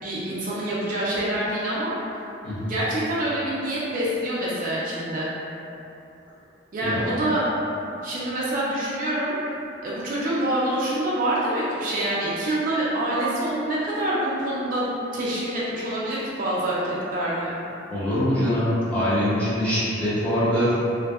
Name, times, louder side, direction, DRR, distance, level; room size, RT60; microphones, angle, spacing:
voice 1, 0.0-1.9 2.7-5.3 6.7-7.5 8.0-9.3 9.8-17.5, right 1 dB, 45° right, -8 dB, 0.4 m, -26 dB
voice 2, 17.9-20.7, equal, 5° left, -13 dB, 0.6 m, -23 dB
2.5 x 2.1 x 2.3 m, 2.8 s
head